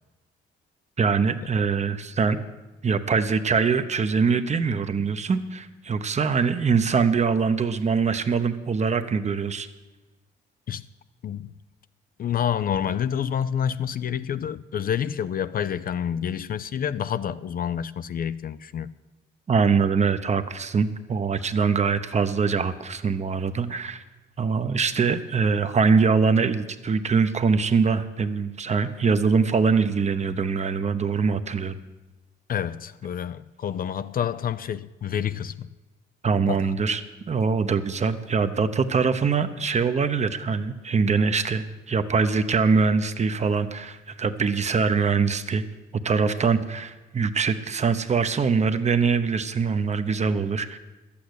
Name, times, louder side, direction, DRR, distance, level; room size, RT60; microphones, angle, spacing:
voice 1, 1.0-2.4 2.8-9.7 19.5-24.0 24.4-31.8 36.2-37.0 37.3-45.6 46.0-50.8, right 5 dB, 35° right, 0.9 m, -23 dB
voice 2, 12.2-18.9 32.5-35.7 36.5-36.7, left 8 dB, 45° left, 0.4 m, -28 dB
12.0 x 8.6 x 8.0 m
cardioid pair, 90°, 20 cm